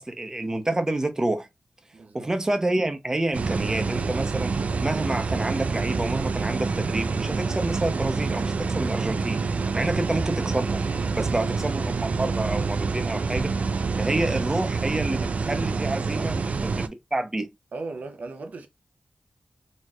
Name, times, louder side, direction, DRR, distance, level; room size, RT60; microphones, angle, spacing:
voice 1, 0.0-1.5 2.1-4.5 4.8-9.4 9.7-10.8 11.1-13.5 14.0-17.5, right 2 dB, 25° right, 0.8 m, -28 dB
voice 2, 1.9-2.3 9.7-10.1 16.1-16.3 17.7-18.7, right 3 dB, 85° right, 0.8 m, -37 dB
sound 1, 3.3-16.9, right 4 dB, 60° right, 0.4 m, -27 dB
4.2 x 3.1 x 2.4 m
wide cardioid pair, 75°, 3 cm